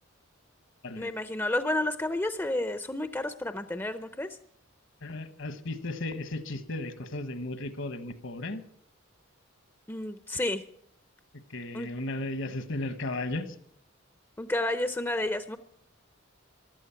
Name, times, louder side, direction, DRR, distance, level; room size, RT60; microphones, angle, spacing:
voice 1, 1.0-4.4 9.9-10.6 11.7-11.9 14.4-15.6, left 1 dB, 10° left, 10 dB, 0.6 m, -31 dB
voice 2, 5.0-8.6 11.5-13.5, left 2 dB, 65° left, 11 dB, 1.3 m, -35 dB
15.5 x 12.0 x 5.8 m, 0.64 s
head